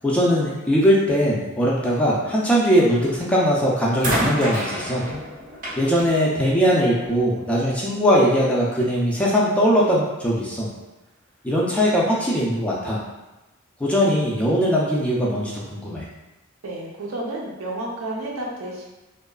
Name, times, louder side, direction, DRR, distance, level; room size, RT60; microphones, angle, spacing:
voice 1, 0.0-5.0 5.8-10.7 11.4-13.0 13.8-16.1, equal, 5° left, -6 dB, 0.3 m, -20 dB
sound 1, 3.1-3.4 4.0-7.3 8.3-8.4, equal, 40° right, 0.6 m, -30 dB
voice 2, 16.6-18.9, right 1 dB, 85° right, -2 dB, 0.6 m, -31 dB
2.7 x 2.3 x 2.3 m, 1.1 s
head